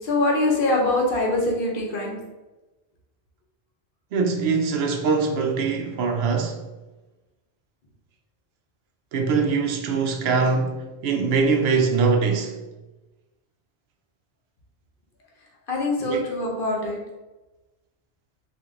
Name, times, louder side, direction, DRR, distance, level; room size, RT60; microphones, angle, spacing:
voice 1, 0.0-2.2 15.7-17.0, left 2 dB, 60° left, 0.9 m, -23 dB
voice 2, 4.1-6.6 9.1-12.6 16.0-16.2, right 4 dB, 75° right, 0.8 m, -23 dB
2.9 x 2.5 x 3.6 m
omnidirectional pair, 1.1 m